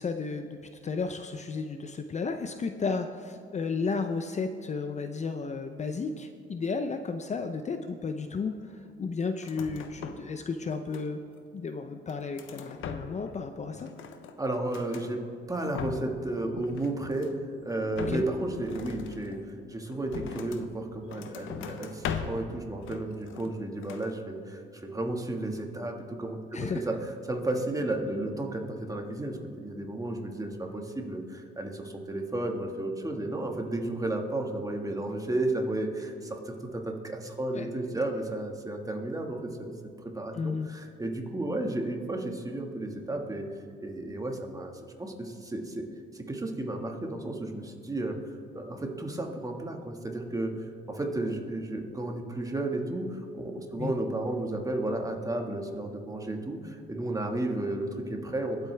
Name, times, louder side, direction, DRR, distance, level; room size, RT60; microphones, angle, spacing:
voice 1, 0.0-8.5 9.0-11.2 11.5-13.9 18.1-18.2 26.5-26.8 37.5-37.7 40.3-40.7 53.8-53.9, left 4 dB, 35° left, 8 dB, 0.6 m, -33 dB
sound 1, 9.4-10.3 10.6-11.4 11.9-13.4 13.6-15.1 15.5-16.2 16.5-17.5 17.9-20.7 21.1-22.5 22.8-23.6 23.8-24.1, left 7 dB, 85° left, 0.9 m, -40 dB
voice 2, 14.4-15.2 15.5-17.3 17.6-26.9 27.2-39.7 40.1-43.5 43.8-45.8 46.1-48.2 48.5-58.6, right 2 dB, 15° right, 2 dB, 1.7 m, -33 dB
24.0 x 8.1 x 3.4 m, 2.5 s
cardioid pair, 90°, 20 cm